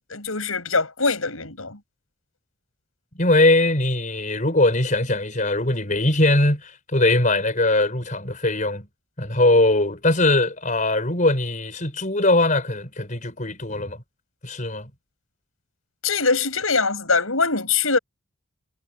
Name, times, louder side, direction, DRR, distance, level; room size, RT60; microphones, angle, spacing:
voice 1, 0.1-1.8 16.0-18.0, left 4 dB, 75° left, 7.1 m, -22 dB
voice 2, 3.2-8.9 9.2-14.0 14.4-14.9, left 2 dB, 35° left, 5.4 m, -21 dB
head